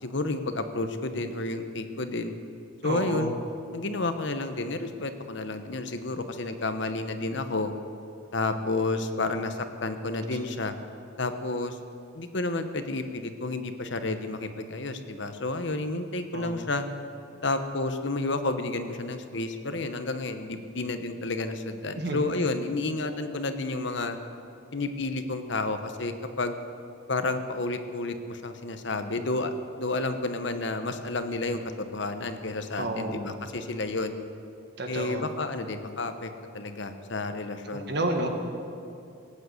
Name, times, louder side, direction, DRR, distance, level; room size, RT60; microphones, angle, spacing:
voice 1, 0.0-2.4 2.8-3.4 3.7-7.7 8.3-10.7 11.2-11.8 12.1-16.8 17.4-24.2 24.7-26.6 27.1-34.2 34.9-37.9, left 2 dB, 60° left, 8 dB, 1.0 m, -31 dB
voice 2, 2.8-3.3 16.3-16.5 22.0-22.3 32.8-33.3 34.8-35.2 37.7-38.3, right 1 dB, 55° right, 3 dB, 1.7 m, -30 dB
18.5 x 8.7 x 8.3 m, 2.5 s
head